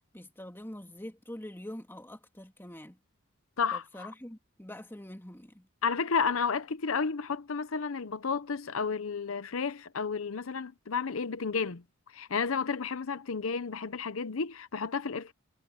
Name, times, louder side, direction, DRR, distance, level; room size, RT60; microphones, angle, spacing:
voice 1, 0.1-3.0 3.7-5.7, left 1 dB, 10° left, 2.6 m, -45 dB
voice 2, 3.6-4.1 5.8-11.8 12.1-15.3, left 5 dB, 85° left, 0.8 m, -32 dB
head